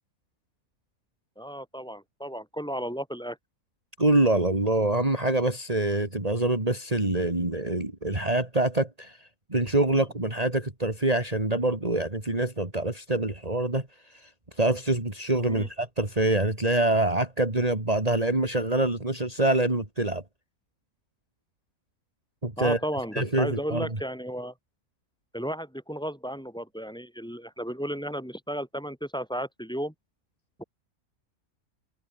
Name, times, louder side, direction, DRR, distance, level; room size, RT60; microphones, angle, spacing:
voice 1, 1.4-3.4 15.4-15.7 22.6-24.5 25.3-29.9 30.6-30.7, equal, 5° left, 5.5 m, -34 dB
voice 2, 4.0-14.3 14.6-20.2 22.4-22.8 23.1-23.9, right 2 dB, 25° right, 3.3 m, -25 dB
omnidirectional pair, 1.6 m